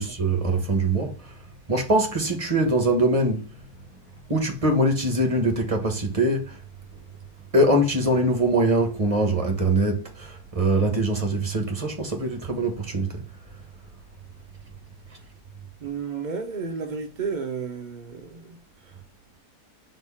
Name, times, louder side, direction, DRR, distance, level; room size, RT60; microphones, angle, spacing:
voice 1, 0.0-1.3 1.7-3.5 4.3-6.6 7.5-13.2, right 1 dB, 25° right, 1.2 m, -23 dB
voice 2, 15.8-18.6, right 5 dB, 60° right, 0.4 m, -32 dB
4.5 x 4.0 x 5.7 m
omnidirectional pair, 1.8 m